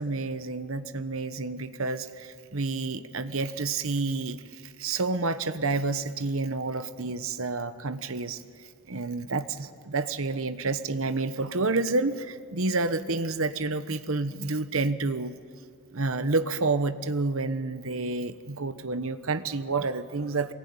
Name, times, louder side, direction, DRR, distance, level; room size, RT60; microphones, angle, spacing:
voice 1, 0.0-8.4 8.9-15.3 15.9-20.5, right 3 dB, 70° right, 11 dB, 1.1 m, -29 dB
23.5 x 21.0 x 9.6 m, 2.1 s
head